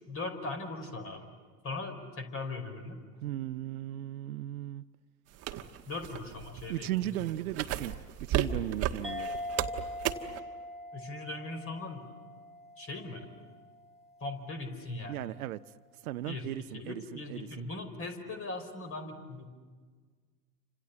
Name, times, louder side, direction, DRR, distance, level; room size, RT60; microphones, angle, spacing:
voice 1, 0.1-1.3 1.6-3.0 5.9-6.9 7.2-7.3 10.9-12.1 12.8-13.3 14.2-15.2 16.2-19.5, left 2 dB, 25° left, 4.9 m, -39 dB
voice 2, 3.2-4.8 6.7-7.9 8.3-9.3 15.1-15.6 16.0-17.0 17.3-17.7, right 14 dB, 60° right, 0.8 m, -36 dB
sound 1, 5.4-10.4, right 11 dB, 30° right, 1.3 m, -34 dB
sound 2, 9.0-13.9, left 1 dB, ahead, 4.3 m, -42 dB
30.0 x 26.5 x 7.2 m
figure-of-eight pair, 90°, 48 cm